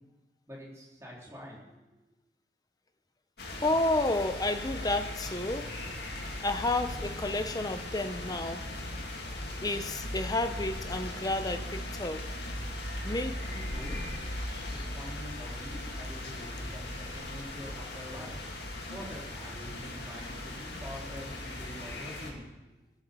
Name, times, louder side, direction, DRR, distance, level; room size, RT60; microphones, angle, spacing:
voice 1, 0.5-2.0 13.4-14.0 14.7-18.4 18.9-22.5, equal, 15° right, -4 dB, 3.7 m, -46 dB
sound 1, 3.4-22.3, left 1 dB, 60° left, 2.5 m, -38 dB
voice 2, 3.6-5.8 6.4-8.7 9.6-12.3 13.0-13.4, left 2 dB, 20° left, 8 dB, 0.8 m, -31 dB
19.0 x 7.3 x 6.9 m, 1.0 s
head